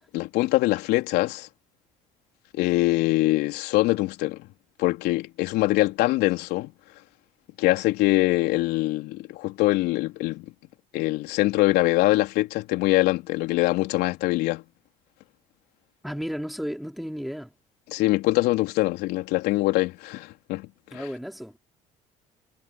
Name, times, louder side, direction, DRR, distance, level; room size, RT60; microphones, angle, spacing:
voice 1, 0.1-1.5 2.5-4.5 4.8-6.7 7.6-10.5 10.9-14.6 17.9-20.7 20.9-21.0, left 19 dB, 70° left, 3.7 m, -23 dB
voice 2, 16.0-17.5 20.9-21.6, equal, ahead, 4.2 m, -33 dB
hypercardioid pair, 65°, 17 cm